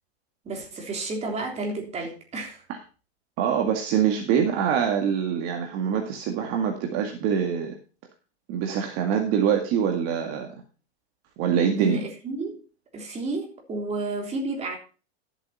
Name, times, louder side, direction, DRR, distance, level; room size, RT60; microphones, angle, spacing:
voice 1, 0.4-2.6 11.8-12.6 12.9-14.8, right 2 dB, 20° right, 3.4 m, -31 dB
voice 2, 3.4-7.8 8.5-10.5 11.4-12.0, right 8 dB, 45° right, 2.0 m, -24 dB
13.0 x 8.2 x 4.3 m
supercardioid pair, 140°, 33 cm